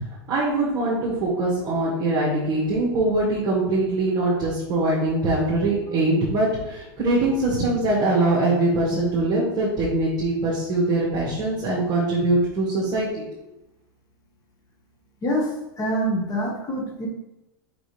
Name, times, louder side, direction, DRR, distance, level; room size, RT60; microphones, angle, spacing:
voice 1, 0.3-13.2, right 2 dB, 35° right, -7 dB, 1.9 m, -22 dB
voice 2, 15.2-17.1, equal, 30° left, 0 dB, 1.6 m, -26 dB
5.4 x 5.2 x 3.4 m, 0.94 s
supercardioid pair, 125°, 12 cm